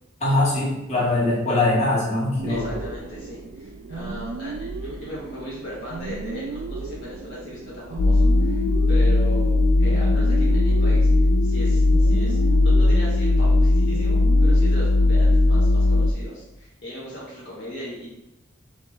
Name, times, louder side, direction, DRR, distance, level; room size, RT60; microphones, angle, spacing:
voice 1, 0.2-2.6, left 2 dB, 35° left, -6 dB, 1.6 m, -22 dB
sound 1, 2.4-14.7, right 3 dB, 55° right, 0.3 m, -35 dB
voice 2, 2.5-18.1, equal, 55° left, -7 dB, 1.1 m, -38 dB
sound 2, 8.0-16.1, left 2 dB, 70° left, 0.4 m, -18 dB
4.3 x 3.6 x 3.1 m, 0.97 s
head